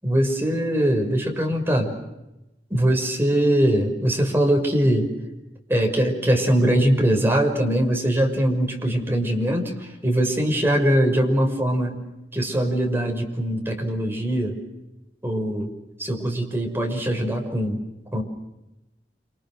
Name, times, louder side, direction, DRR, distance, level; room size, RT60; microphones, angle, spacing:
voice 1, 0.0-1.9 2.7-5.1 5.7-12.0 12.3-14.6 15.2-15.7 16.0-17.8 18.1-18.2, right 1 dB, 15° right, 2 dB, 6.2 m, -22 dB
29.0 x 28.5 x 6.5 m, 0.94 s
head